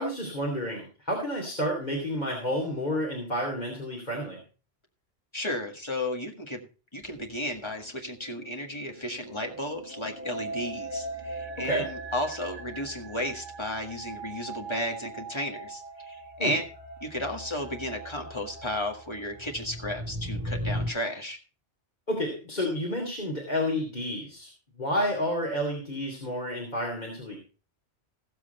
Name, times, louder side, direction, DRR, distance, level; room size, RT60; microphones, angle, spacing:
voice 1, 0.0-4.4 11.6-11.9 16.4-16.5 22.1-24.5 24.8-27.4, equal, 40° left, -2 dB, 2.9 m, -30 dB
voice 2, 5.3-6.6 6.9-16.6 17.0-21.4, left 1 dB, 25° left, 2 dB, 1.8 m, -33 dB
sound 1, 7.1-20.9, right 1 dB, 35° right, 2.3 m, -39 dB
15.5 x 7.6 x 4.3 m, 0.36 s
omnidirectional pair, 1.1 m